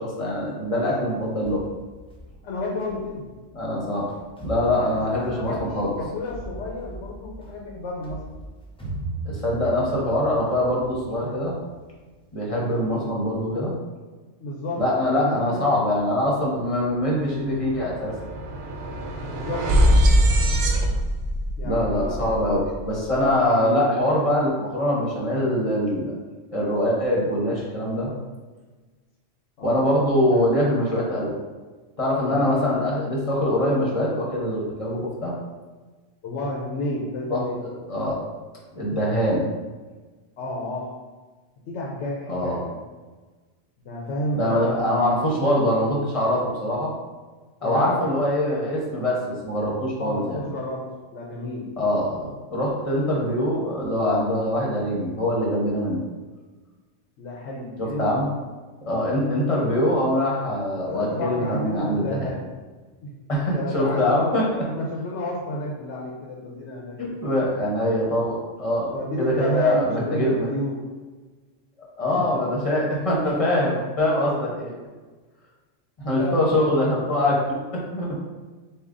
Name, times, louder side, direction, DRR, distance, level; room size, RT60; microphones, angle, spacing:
voice 1, 0.0-1.6 3.5-4.1 4.4-5.9 9.2-11.5 12.3-13.7 14.8-18.1 21.6-26.1 26.5-28.1 29.6-31.3 32.0-35.3 37.3-38.2 38.7-39.5 42.3-42.6 44.3-46.9 47.6-50.4 51.8-56.0 57.8-58.3 58.8-62.3 63.3-64.5 67.0-68.9 69.2-70.5 72.0-74.7 76.0-78.1, left 1 dB, 30° left, -4 dB, 0.9 m, -23 dB
sound 1, 1.4-12.6, right 2 dB, 5° left, 0.6 m, -39 dB
voice 2, 2.4-3.3 4.8-8.2 12.7-13.1 14.4-15.8 19.2-19.8 21.6-22.4 23.5-23.8 29.6-29.9 30.3-30.6 32.2-32.9 36.2-37.6 40.4-41.0 41.7-42.8 43.8-45.2 47.6-48.1 50.0-51.7 57.2-58.2 60.8-62.5 63.0-63.1 63.5-64.3 64.6-67.2 68.9-70.8 72.1-72.5 72.8-72.9 76.2-77.0 78.1-78.2, left 1 dB, 70° left, -2 dB, 1.0 m, -31 dB
sound 2, 16.5-16.7 17.0-23.2, equal, 65° right, 0.8 m, -23 dB
6.8 x 2.4 x 2.5 m, 1.3 s
omnidirectional pair, 1.3 m